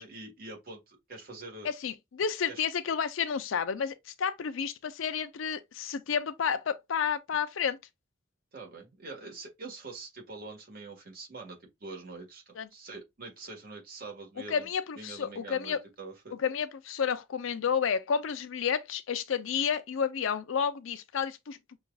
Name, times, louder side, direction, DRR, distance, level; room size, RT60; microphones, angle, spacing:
voice 1, 0.0-1.7 2.5-2.7 8.5-14.7 14.9-16.4, right 3 dB, 45° right, 1.4 m, -45 dB
voice 2, 1.6-7.8 12.6-12.7 14.5-15.8 16.3-21.6, left 7 dB, 75° left, 0.5 m, -31 dB
5.9 x 2.4 x 2.3 m
head